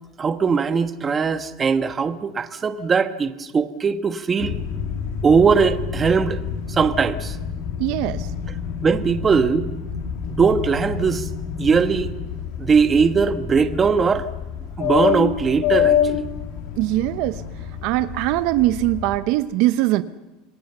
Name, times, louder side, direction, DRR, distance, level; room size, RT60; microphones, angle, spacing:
voice 1, 0.2-4.6 5.2-6.4 6.7-7.4 8.8-9.7 10.3-11.3 11.6-12.1 12.6-14.3 14.8-16.2, right 5 dB, 20° right, 10 dB, 1.2 m, -20 dB
sound 1, 4.4-19.2, left 8 dB, 65° left, 3.1 m, -27 dB
voice 2, 7.8-8.3 16.8-17.4 17.8-20.0, right 16 dB, 60° right, 13 dB, 0.8 m, -21 dB
27.0 x 20.5 x 6.8 m, 1.1 s
supercardioid pair, 145°, 0 cm